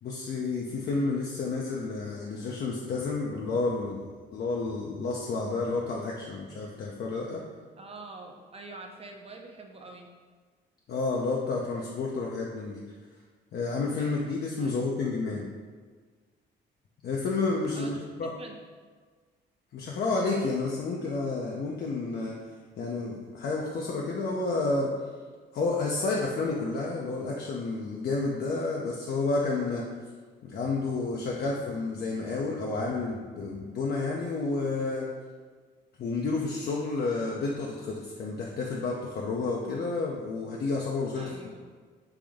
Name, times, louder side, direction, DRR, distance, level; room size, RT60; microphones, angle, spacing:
voice 1, 0.0-7.4 10.9-12.8 13.5-15.4 17.0-18.3 19.7-22.3 22.8-24.9 25.5-29.8 30.4-35.1 36.0-41.3, left 3 dB, 55° left, -2 dB, 0.5 m, -30 dB
voice 2, 7.8-10.1 14.6-14.9 17.7-18.1 18.4-18.6 41.2-41.6, right 3 dB, 30° right, 2 dB, 0.5 m, -45 dB
3.4 x 2.5 x 3.5 m, 1.5 s
cardioid pair, 90°, 20 cm